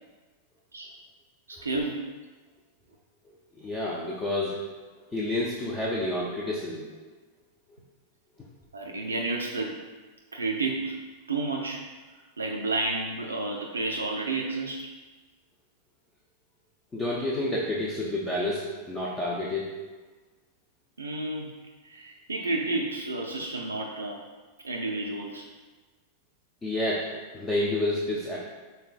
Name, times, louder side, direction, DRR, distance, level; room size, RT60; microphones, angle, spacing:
voice 1, 1.5-2.1 8.7-9.8 10.3-11.0 11.3-11.9 12.4-14.9 21.0-21.5 21.8-24.2 24.6-25.5, right 2 dB, 75° right, 0 dB, 0.4 m, -31 dB
voice 2, 3.3-4.6 5.1-6.9 16.9-19.7 26.6-28.4, left 1 dB, 20° left, -5 dB, 0.6 m, -29 dB
5.5 x 3.8 x 2.3 m, 1.3 s
figure-of-eight pair, 90°, 0 cm